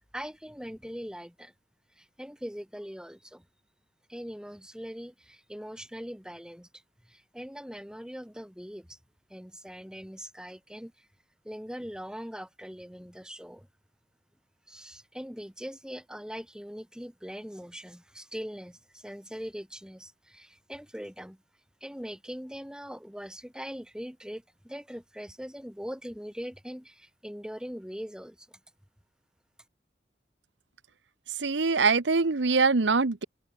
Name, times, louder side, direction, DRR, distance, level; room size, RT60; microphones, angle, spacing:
voice 1, 0.1-1.5 2.0-3.4 4.1-6.7 7.1-9.0 9.3-11.1 11.4-13.7 14.7-21.4 21.8-28.6, equal, 5° right, 5.1 m, -41 dB
voice 2, 31.4-33.2, right 4 dB, 80° right, 1.0 m, -23 dB
open air
head